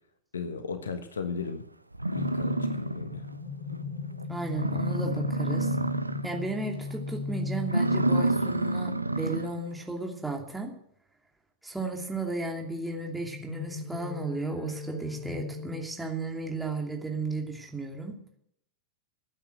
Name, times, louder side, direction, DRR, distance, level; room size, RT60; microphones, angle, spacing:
voice 1, 0.3-1.7 2.1-3.2, left 5 dB, 70° left, 9 dB, 1.4 m, -35 dB
sound 1, 1.5-1.6 1.9-3.3 3.7-3.8 4.2-4.3 4.5-6.4 6.8-7.1 7.6-9.6, right 2 dB, 85° right, 0.5 m, -29 dB
sound 2, 2.1-8.8 13.0-15.8, left 3 dB, 50° left, 4.1 m, -36 dB
voice 2, 4.3-5.7 6.2-10.7 11.6-18.2, right 3 dB, 5° right, 0 dB, 2.8 m, -34 dB
15.0 x 9.0 x 7.9 m, 0.70 s
figure-of-eight pair, 90°, 0 cm